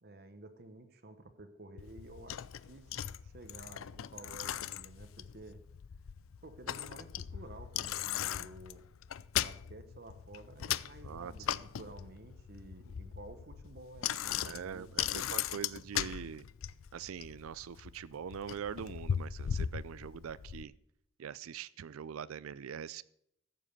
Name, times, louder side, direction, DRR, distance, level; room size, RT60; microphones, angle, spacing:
voice 1, 0.0-5.6 6.4-8.8 9.3-15.4, right 2 dB, 50° right, 9 dB, 1.0 m, -52 dB
Bicycle, 1.8-20.6, left 10 dB, 80° left, 0.4 m, -39 dB
voice 2, 11.0-11.6 14.4-16.5 16.9-20.7 21.2-23.0, right 7 dB, 90° right, 18 dB, 0.4 m, -43 dB
14.0 x 7.5 x 6.6 m, 0.75 s
head